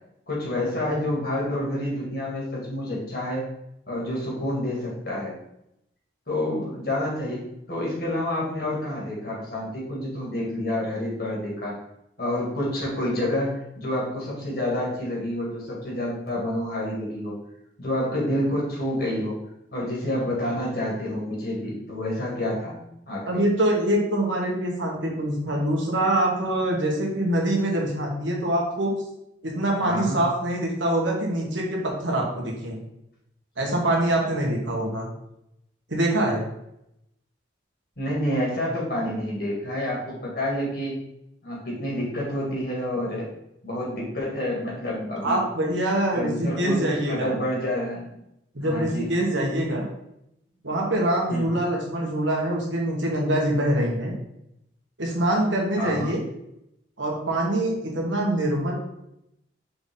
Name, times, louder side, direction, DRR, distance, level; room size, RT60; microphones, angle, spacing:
voice 1, 0.3-3.4 3.9-5.4 6.3-7.4 7.7-11.8 12.2-17.4 17.8-19.4 19.7-22.7 23.1-23.2 29.8-30.2 38.0-41.0 41.4-43.3 43.6-45.4 46.1-48.2 48.6-49.1 51.3-51.6 55.8-56.1, left 1 dB, 50° left, -4 dB, 2.4 m, -28 dB
voice 2, 23.2-28.9 29.4-32.8 33.6-35.1 35.9-36.4 45.2-47.3 48.5-49.8 50.6-54.1 55.0-56.2 57.0-58.7, right 1 dB, 80° right, -1 dB, 1.6 m, -24 dB
5.8 x 4.2 x 3.8 m, 0.82 s
head